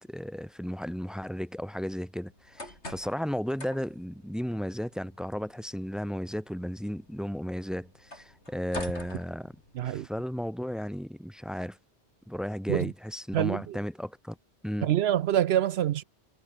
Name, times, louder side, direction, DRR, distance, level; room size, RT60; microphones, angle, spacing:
voice 1, 0.1-9.5 9.8-11.8 12.3-14.4 14.6-14.9, equal, ahead, 4.1 m, -34 dB
sound 1, 2.3-10.1, left 1 dB, 75° left, 8.6 m, -47 dB
voice 2, 9.8-10.1 12.7-12.9 13.3-13.8 14.8-16.0, right 11 dB, 70° right, 0.8 m, -26 dB
omnidirectional pair, 1.2 m